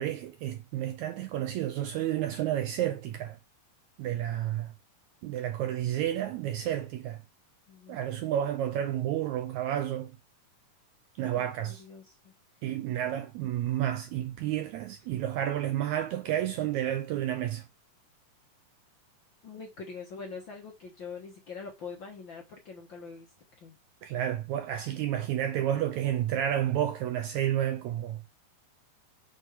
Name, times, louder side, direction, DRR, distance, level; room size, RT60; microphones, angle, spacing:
voice 1, 0.0-3.4 4.0-4.7 5.2-7.2 7.9-10.1 11.2-11.8 12.6-17.6 24.0-28.2, right 11 dB, 75° right, 1.7 m, -30 dB
voice 2, 7.7-8.0 11.4-12.3 19.4-23.3 23.6-23.8, left 5 dB, 50° left, 1.5 m, -44 dB
6.8 x 4.4 x 4.6 m
omnidirectional pair, 3.8 m